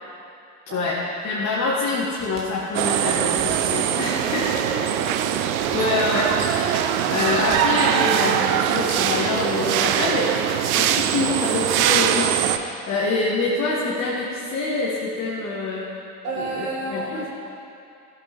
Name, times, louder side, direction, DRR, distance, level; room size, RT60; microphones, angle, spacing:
voice 1, 0.7-4.5 5.7-10.5 10.8-10.9 11.1-15.9 16.4-17.3, left 3 dB, 35° left, -5 dB, 1.8 m, -26 dB
sound 1, 2.2-2.5 3.3-3.6 4.4-4.7 5.6-5.8 6.2-6.5 7.4-7.6 8.6-9.4, right 4 dB, 35° right, 2.2 m, -40 dB
sound 2, 2.7-12.6, right 10 dB, 65° right, 0.7 m, -22 dB
voice 2, 4.6-5.3 10.4-11.1 16.2-17.3, right 2 dB, 85° right, -5 dB, 2.5 m, -33 dB
15.5 x 8.2 x 3.7 m, 2.5 s
figure-of-eight pair, 70°, 45 cm